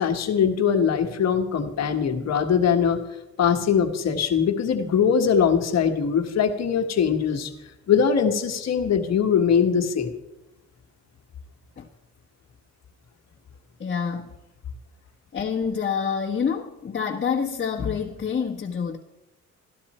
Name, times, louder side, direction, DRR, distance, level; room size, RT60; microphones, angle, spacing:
voice 1, 0.0-3.0 3.4-7.5 7.9-10.1, left 7 dB, 60° left, 5 dB, 1.5 m, -21 dB
voice 2, 13.8-14.3 15.3-19.0, left 6 dB, 35° left, -1 dB, 1.4 m, -27 dB
14.0 x 12.0 x 4.3 m, 0.92 s
cardioid pair, 90°, 30 cm